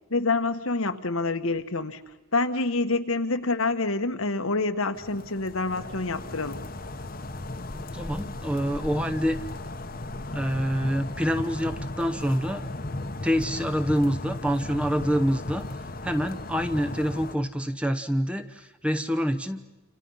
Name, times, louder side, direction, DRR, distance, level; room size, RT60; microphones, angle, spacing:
voice 1, 0.1-2.0 2.3-6.6, left 3 dB, 80° left, 8 dB, 1.4 m, -27 dB
sound 1, 4.9-17.4, left 2 dB, 45° left, 1.1 m, -36 dB
voice 2, 7.7-9.4 10.3-12.7 13.2-15.7 16.0-19.7, equal, 5° right, 10 dB, 1.0 m, -26 dB
28.0 x 27.5 x 5.6 m, 1.0 s
head